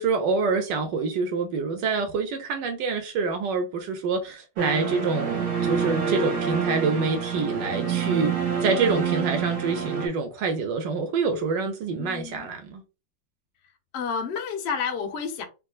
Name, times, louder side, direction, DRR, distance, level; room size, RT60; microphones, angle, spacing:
voice 1, 0.0-12.8, right 4 dB, 75° right, 1.2 m, -26 dB
sound 1, 4.6-10.1, right 6 dB, 50° right, 1.1 m, -27 dB
voice 2, 12.0-12.5 13.9-15.4, left 6 dB, 85° left, 0.5 m, -30 dB
3.5 x 2.7 x 2.3 m
omnidirectional pair, 2.1 m